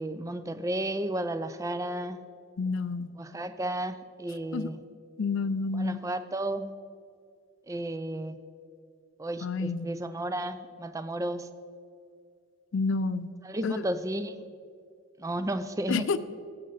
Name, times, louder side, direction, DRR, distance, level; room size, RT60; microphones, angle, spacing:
voice 1, 0.0-2.2 3.2-4.8 5.7-6.7 7.7-8.4 9.2-11.5 13.4-14.4 15.2-16.1, right 1 dB, 15° right, 11 dB, 0.4 m, -33 dB
voice 2, 2.6-3.1 4.5-4.7 5.2-6.0 9.4-9.9 12.7-13.3 13.6-13.9 15.9-16.2, left 4 dB, 60° left, 14 dB, 0.4 m, -29 dB
14.0 x 7.6 x 4.0 m, 2.3 s
head